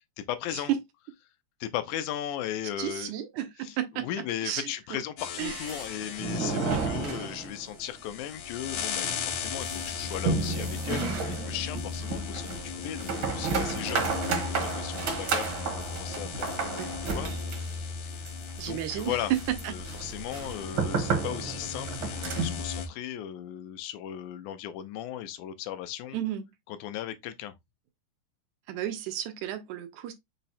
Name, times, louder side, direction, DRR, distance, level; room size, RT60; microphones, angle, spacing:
voice 1, 0.2-0.7 1.6-3.1 3.6-16.8 17.1-17.3 17.6-18.1 18.7-19.3 19.7-26.2 26.7-27.5, left 11 dB, 90° left, 2.1 m, -37 dB
voice 2, 2.8-4.1 4.4-4.7 5.4-5.6 16.8-16.9 18.6-19.4 19.6-19.7 26.1-26.4 28.7-30.1, right 12 dB, 85° right, 2.2 m, -32 dB
sound 1, 5.2-22.9, left 6 dB, 70° left, 2.3 m, -37 dB
sound 2, 5.4-8.1 8.5-8.6 9.0-22.7, right 4 dB, 60° right, 1.3 m, -32 dB
5.6 x 2.0 x 4.1 m
omnidirectional pair, 3.4 m